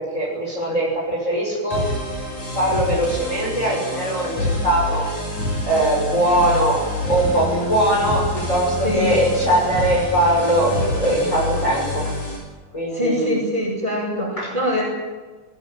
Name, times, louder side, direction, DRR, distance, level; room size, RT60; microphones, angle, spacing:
voice 1, 0.0-1.8 2.5-5.1 5.6-12.1 12.7-13.4 14.4-14.5, right 1 dB, 20° left, -4 dB, 6.9 m, -21 dB
sound 1, 1.7-12.4, left 1 dB, 65° left, 7.8 m, -27 dB
voice 2, 12.9-14.8, equal, 10° right, -1 dB, 7.6 m, -23 dB
20.5 x 20.0 x 9.3 m, 1.3 s
omnidirectional pair, 3.6 m